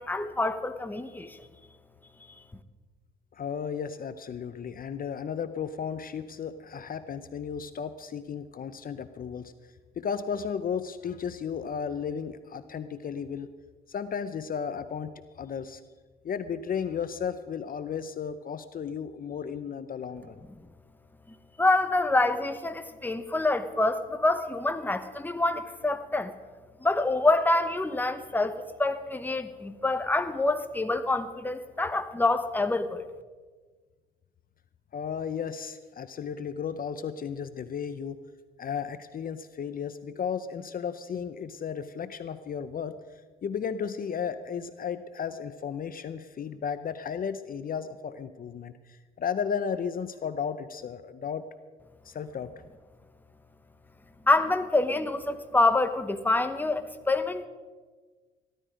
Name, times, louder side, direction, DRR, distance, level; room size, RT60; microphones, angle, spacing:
voice 1, 0.0-1.4 21.6-26.3 26.8-33.0 54.3-57.5, left 2 dB, 10° left, 9 dB, 1.0 m, -26 dB
voice 2, 3.3-9.5 10.0-13.5 13.9-15.8 16.2-20.4 34.9-38.2 38.6-43.0 43.4-51.4 52.0-52.5, left 7 dB, 45° left, 12 dB, 0.7 m, -34 dB
15.5 x 12.5 x 5.0 m, 1.4 s
cardioid pair, 90°, 20 cm